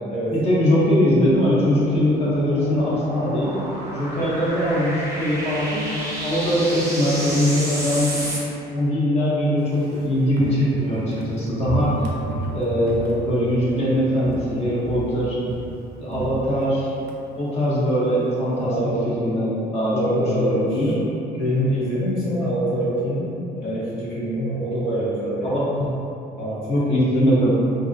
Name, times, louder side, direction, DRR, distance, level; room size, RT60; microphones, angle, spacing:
voice 1, 0.3-3.6 3.9-5.9 6.2-8.3 8.7-11.9 12.5-15.4 16.0-16.9 17.4-18.7 19.1-21.1 25.4-25.9 26.7-27.5, equal, 35° left, -8 dB, 0.7 m, -21 dB
sound 1, 1.3-8.4, right 1 dB, 20° right, 0.6 m, -32 dB
Walk footsteps, 9.6-13.9 14.2-14.6 14.8-17.2 17.5-17.6, right 2 dB, 65° right, 0.4 m, -31 dB
voice 2, 18.5-19.0 19.9-20.9 21.4-23.3 23.6-25.6 26.4-26.7, equal, 70° left, -8 dB, 0.8 m, -25 dB
2.4 x 2.0 x 2.5 m, 2.8 s
cardioid pair, 110°, 17 cm